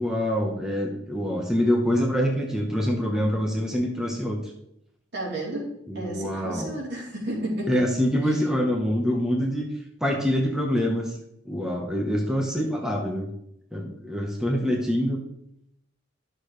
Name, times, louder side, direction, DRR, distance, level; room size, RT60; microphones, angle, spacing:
voice 1, 0.0-4.4 5.9-6.7 7.7-9.6 10.0-11.1 11.4-13.3 13.7-15.2, equal, 5° right, -1 dB, 1.1 m, -25 dB
voice 2, 5.1-7.8 8.2-8.3, right 1 dB, 60° right, -4 dB, 3.5 m, -32 dB
12.0 x 6.6 x 3.3 m, 0.78 s
head